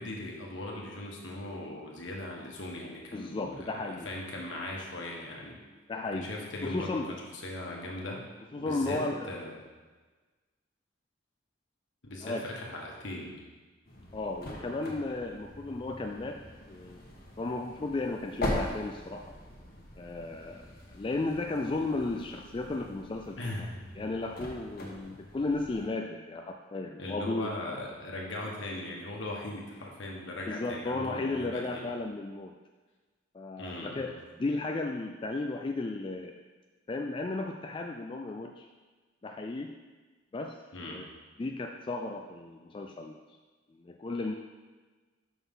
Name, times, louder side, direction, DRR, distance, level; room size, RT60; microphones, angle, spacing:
voice 1, 0.0-5.6 6.1-7.2 7.4-8.2 8.6-9.6 12.0-13.3 23.4-24.1 27.0-31.9 33.6-34.2 40.7-41.0, left 1 dB, 65° left, -2 dB, 1.5 m, -39 dB
voice 2, 3.1-4.1 5.9-6.3 6.6-7.2 8.1-8.2 8.5-9.3 12.2-12.5 14.1-16.4 16.7-17.0 17.4-19.4 20.0-23.7 24.0-27.5 30.5-32.5 33.3-34.1 34.4-36.4 36.9-38.7 39.2-39.8 40.3-41.0 41.4-43.2 43.7-44.3, left 2 dB, 25° left, 3 dB, 0.3 m, -34 dB
sound 1, 13.8-25.9, left 1 dB, 50° left, 1.4 m, -41 dB
6.0 x 6.0 x 5.5 m, 1.3 s
head